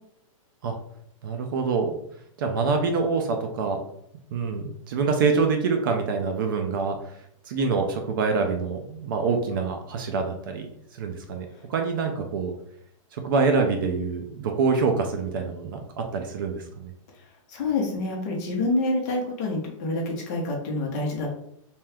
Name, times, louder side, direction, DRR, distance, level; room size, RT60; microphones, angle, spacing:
voice 1, 1.2-2.0 2.4-3.8 4.3-7.0 7.5-10.7 11.0-12.5 13.1-16.9, right 4 dB, 40° right, 4 dB, 0.4 m, -25 dB
voice 2, 17.5-21.3, left 2 dB, 30° left, 0 dB, 0.7 m, -27 dB
2.7 x 2.3 x 3.2 m, 0.72 s
supercardioid pair, 170°, 17 cm